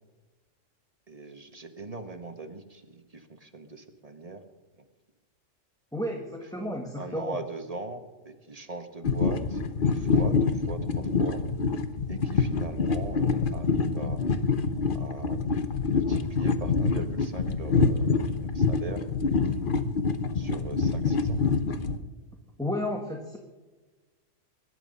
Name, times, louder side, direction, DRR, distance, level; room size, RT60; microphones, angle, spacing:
voice 1, 1.1-4.4 6.6-11.4 12.1-14.2 14.9-15.4 15.9-19.0 20.3-21.4, right 3 dB, 30° right, 6 dB, 1.5 m, -41 dB
voice 2, 5.9-7.4 22.6-23.4, left 1 dB, 5° left, 2 dB, 1.5 m, -32 dB
sound 1, 9.0-22.0, left 4 dB, 45° left, 1.1 m, -26 dB
22.0 x 11.5 x 5.4 m, 1.3 s
omnidirectional pair, 1.3 m